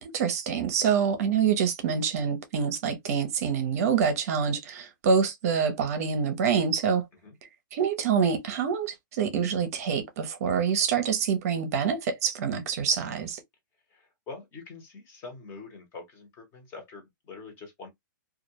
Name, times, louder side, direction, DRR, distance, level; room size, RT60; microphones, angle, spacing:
voice 1, 0.0-7.1 7.7-13.4, right 6 dB, 50° right, 0.6 m, -26 dB
voice 2, 13.9-17.9, left 4 dB, 20° left, 0.8 m, -44 dB
2.3 x 2.1 x 2.7 m
hypercardioid pair, 155°, 11 cm